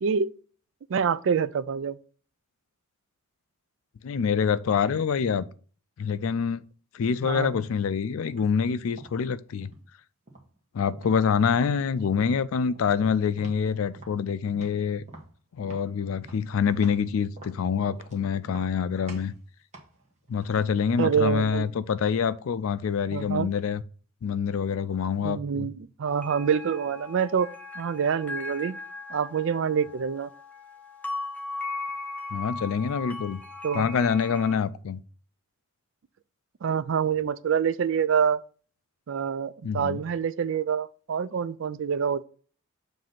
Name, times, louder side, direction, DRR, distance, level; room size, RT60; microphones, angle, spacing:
voice 1, 0.9-2.0 7.2-7.5 21.0-21.7 23.1-23.5 25.2-27.5 27.8-28.8 29.1-30.3 33.6-33.9 36.6-38.4 39.1-42.2, right 7 dB, 60° right, 0.4 m, -26 dB
voice 2, 4.0-5.5 6.0-6.6 6.9-9.7 10.7-15.0 15.6-19.3 20.3-23.8 24.2-25.7 32.3-33.4 33.7-35.0 39.6-40.0, left 6 dB, 70° left, 0.4 m, -26 dB
sound 1, 8.3-8.5 9.0-9.9 10.3-11.2 11.5-11.8 12.2-12.4 12.8-13.7 14.0-17.1 17.4-18.2 18.5-18.8 19.1-19.4 19.7-21.4, right 2 dB, 35° right, 1.2 m, -48 dB
sound 2, 26.0-34.6, left 3 dB, 5° left, 0.6 m, -38 dB
7.4 x 2.7 x 5.7 m
head